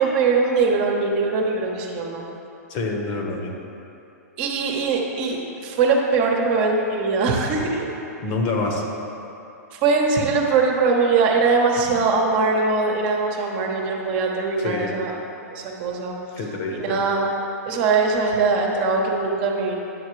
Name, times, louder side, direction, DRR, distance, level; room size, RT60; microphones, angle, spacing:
voice 1, 0.0-2.2 4.4-5.4 5.6-7.8 9.7-15.1 15.5-16.1 16.7-17.3 17.6-19.7, right 4 dB, 45° right, 0 dB, 1.0 m, -21 dB
voice 2, 2.7-3.5 8.2-8.8 14.6-15.0 16.3-17.0, left 3 dB, 45° left, 1 dB, 1.1 m, -26 dB
9.3 x 6.6 x 3.2 m, 2.9 s
hypercardioid pair, 120°, 9 cm